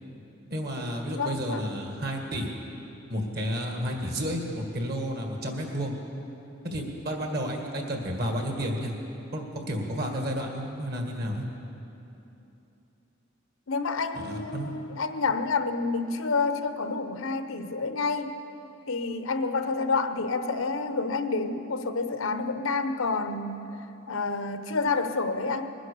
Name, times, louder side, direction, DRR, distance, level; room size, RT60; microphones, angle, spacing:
voice 1, 0.5-2.5 3.1-5.9 6.6-8.9 9.3-11.4 14.1-14.7, equal, 50° right, 2 dB, 2.0 m, -31 dB
voice 2, 1.1-1.6 13.7-18.4 18.9-23.7 24.1-25.7, left 4 dB, 85° left, 9 dB, 0.9 m, -29 dB
20.5 x 10.5 x 6.9 m, 3.0 s
head